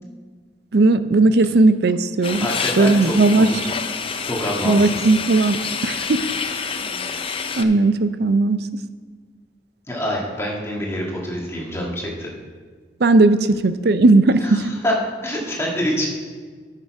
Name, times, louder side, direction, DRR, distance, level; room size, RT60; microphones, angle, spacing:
voice 1, 0.7-2.5 2.8-3.5 4.6-6.2 7.6-8.6 13.0-14.6, right 2 dB, 65° right, 12 dB, 0.5 m, -16 dB
sound 1, 2.2-7.6, left 6 dB, 30° left, 0.5 m, -28 dB
voice 2, 2.4-3.6 4.2-5.0 9.9-12.3 14.4-14.9 15.2-16.1, equal, 15° left, -3 dB, 1.9 m, -26 dB
10.5 x 6.6 x 4.9 m, 1.5 s
head